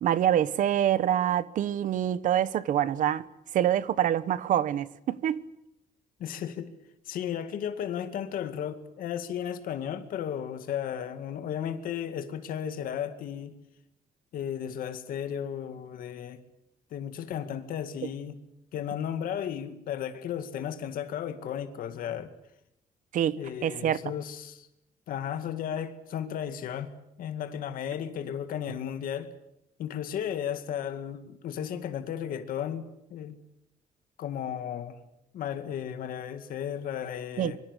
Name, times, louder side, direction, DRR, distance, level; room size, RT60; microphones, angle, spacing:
voice 1, 0.0-3.2 3.5-5.4 23.1-24.0 37.4-37.5, right 10 dB, 65° right, 1.1 m, -26 dB
voice 2, 6.2-6.7 7.1-13.5 14.3-16.4 16.9-18.4 18.7-22.3 23.4-24.7 25.1-26.9 27.2-29.3 29.8-33.4 34.2-35.0 35.3-37.6, left 9 dB, 75° left, 2.1 m, -34 dB
25.5 x 24.0 x 8.2 m
cardioid pair, 175°, 15 cm